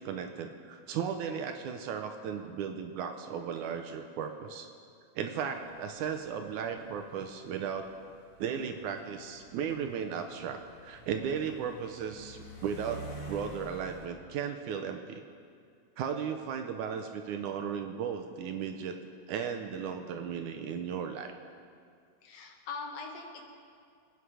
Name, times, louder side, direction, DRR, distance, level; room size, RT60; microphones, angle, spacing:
voice 1, 0.0-4.7 5.2-7.9 8.4-15.2 16.0-19.0 19.3-21.3, right 7 dB, 75° right, 6 dB, 2.0 m, -36 dB
sound 1, 5.6-14.1, equal, 30° left, 1.7 m, -49 dB
voice 2, 22.2-23.5, left 4 dB, 75° left, 2 dB, 3.2 m, -42 dB
24.5 x 9.5 x 4.9 m, 2.2 s
omnidirectional pair, 4.0 m